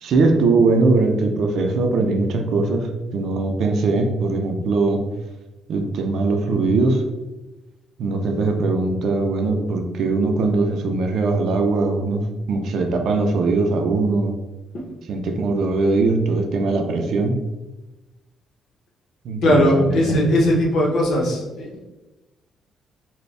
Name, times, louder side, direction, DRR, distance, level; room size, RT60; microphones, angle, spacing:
voice 1, 0.0-5.0 5.7-7.0 8.0-14.3 15.1-17.4 19.2-19.9, right 3 dB, 70° right, 4 dB, 0.6 m, -20 dB
voice 2, 19.4-21.8, left 1 dB, 75° left, -1 dB, 1.0 m, -19 dB
4.1 x 2.3 x 3.4 m, 1.1 s
cardioid pair, 90°, 0 cm